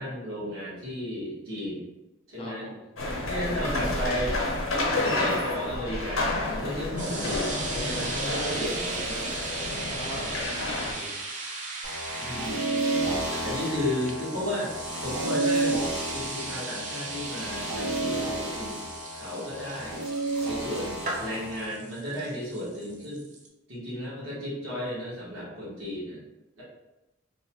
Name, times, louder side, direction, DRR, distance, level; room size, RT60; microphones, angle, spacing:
voice 1, 0.0-1.9 2.3-2.7 3.2-4.3 5.0-9.5 12.2-12.8 13.4-15.8 16.1-18.8 19.2-20.0 20.4-23.2 23.7-26.2 26.6-26.7, left 1 dB, 75° right, -7 dB, 1.3 m, -34 dB
voice 2, 2.4-2.9 9.8-10.4 10.6-11.2, left 1 dB, 30° left, 0 dB, 0.4 m, -42 dB
sound 1, 3.0-10.9, left 2 dB, 80° left, 0.7 m, -30 dB
sound 2, 7.0-23.5, right 3 dB, 35° right, 0.4 m, -37 dB
sound 3, 11.8-21.7, right 2 dB, 90° right, 0.7 m, -31 dB
2.8 x 2.2 x 2.9 m, 0.98 s
head